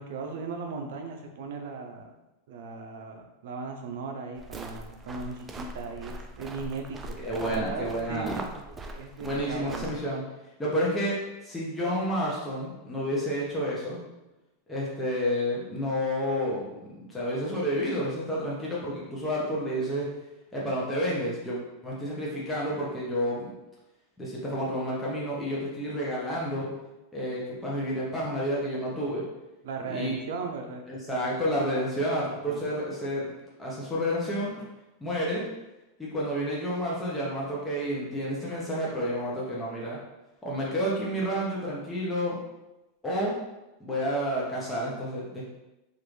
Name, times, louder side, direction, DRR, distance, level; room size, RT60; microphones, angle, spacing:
voice 1, 0.0-2.1 2.5-8.6 8.9-9.9 29.6-30.8 31.8-31.9 32.4-32.6, right 4 dB, 70° right, 4 dB, 0.5 m, -37 dB
sound 1, 4.4-10.0, right 1 dB, 15° right, 0.3 m, -41 dB
voice 2, 7.2-8.4 9.2-10.2 10.6-11.2 11.4-14.0 14.7-16.6 17.1-20.1 20.5-23.5 24.2-26.7 27.1-29.3 29.9-30.1 30.9-34.5 35.0-35.4 36.0-40.0 40.4-42.4 43.0-43.3 43.8-45.4, equal, 10° left, -6 dB, 0.7 m, -30 dB
3.1 x 2.5 x 3.1 m, 0.99 s
supercardioid pair, 135°, 0 cm